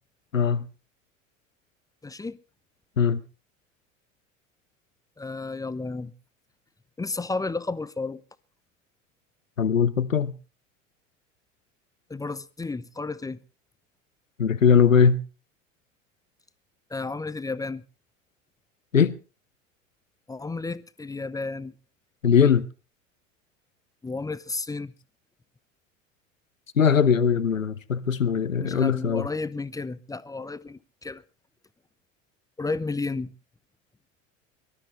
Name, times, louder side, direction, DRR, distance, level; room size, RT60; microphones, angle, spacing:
voice 1, 0.3-0.6 3.0-3.2 9.6-10.3 14.4-15.2 18.9-19.2 22.2-22.7 26.8-29.3, left 6 dB, 90° left, 0.7 m, -20 dB
voice 2, 2.0-2.4 5.2-6.1 7.0-8.2 12.1-13.4 16.9-17.8 20.3-21.7 24.0-24.9 28.6-31.2 32.6-33.3, left 3 dB, 10° left, 0.7 m, -32 dB
24.0 x 12.5 x 3.3 m
figure-of-eight pair, 65°, 38 cm